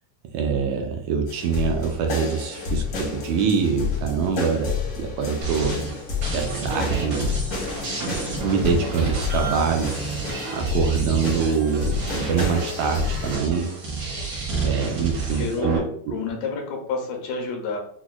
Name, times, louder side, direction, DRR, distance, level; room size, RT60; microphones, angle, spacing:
voice 1, 0.3-5.8 6.3-7.3 8.0-8.2 8.4-13.7 14.6-15.8, right 6 dB, 80° right, 2 dB, 1.7 m, -25 dB
sound 1, 1.3-13.3, left 5 dB, 60° left, 1.0 m, -30 dB
sound 2, 5.4-15.8, right 4 dB, 65° right, 1.2 m, -30 dB
voice 2, 15.3-17.8, left 4 dB, 80° left, 1 dB, 1.9 m, -29 dB
6.0 x 2.2 x 2.3 m, 0.64 s
omnidirectional pair, 3.3 m